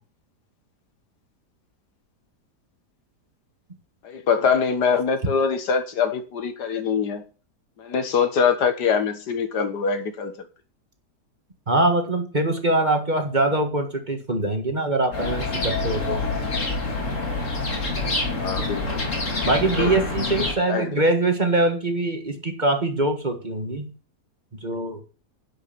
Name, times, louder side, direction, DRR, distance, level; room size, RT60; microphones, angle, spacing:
voice 1, 4.0-7.2 7.8-10.4 18.3-19.1 19.8-19.9 20.7-21.0, left 6 dB, 75° left, 1.9 m, -23 dB
voice 2, 11.7-16.2 19.4-23.9 24.6-25.0, right 2 dB, 25° right, 1.7 m, -23 dB
sound 1, 15.1-20.5, left 3 dB, 45° left, 3.4 m, -26 dB
11.0 x 6.3 x 7.1 m
omnidirectional pair, 1.8 m